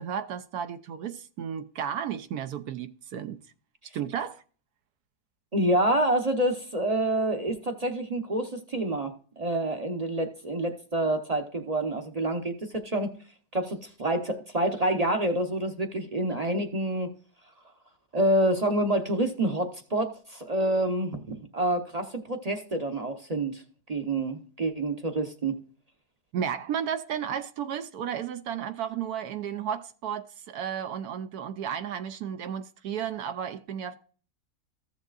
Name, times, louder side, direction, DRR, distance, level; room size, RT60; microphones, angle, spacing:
voice 1, 0.0-3.4 3.9-4.4 26.3-34.0, right 8 dB, 75° right, 1.0 m, -33 dB
voice 2, 5.5-13.1 13.5-17.1 18.1-23.6 23.9-25.5, right 1 dB, 35° right, 0.7 m, -27 dB
14.5 x 7.1 x 2.4 m
omnidirectional pair, 1.7 m